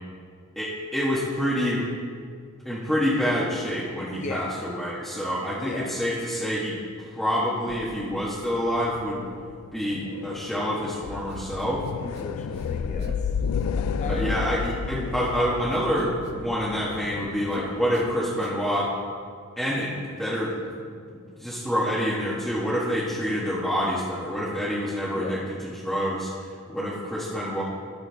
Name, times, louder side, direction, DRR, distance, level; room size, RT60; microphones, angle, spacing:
voice 1, 0.5-1.8 2.6-6.7 7.1-9.2 9.7-11.9 14.0-18.9 19.6-20.5 21.4-26.3 26.7-27.6, equal, ahead, -9 dB, 1.3 m, -27 dB
voice 2, 4.1-4.6 5.6-6.0 12.0-13.3 14.0-14.4 25.1-25.5, left 3 dB, 35° left, 2 dB, 0.5 m, -35 dB
sound 1, 7.7-18.2, left 6 dB, 85° left, 0.3 m, -33 dB
Human voice, 11.3-12.2 12.5-13.3 13.5-18.7, right 2 dB, 50° right, 0.8 m, -44 dB
17.0 x 6.2 x 3.4 m, 2.2 s
head